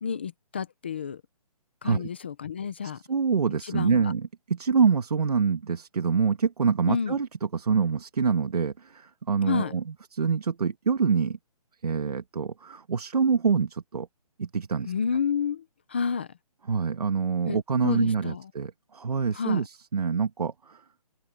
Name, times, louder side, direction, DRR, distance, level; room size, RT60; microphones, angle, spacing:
voice 1, 0.0-1.2 1.8-3.0 3.6-4.1 6.9-7.2 9.5-9.7 14.9-16.3 17.5-18.5 19.3-19.6, left 6 dB, 15° left, 0.7 m, -30 dB
voice 2, 3.1-7.3 7.5-11.4 11.8-14.1 14.4-14.9 16.7-20.8, right 5 dB, 80° right, 2.0 m, -26 dB
hypercardioid pair, 180°, 20 cm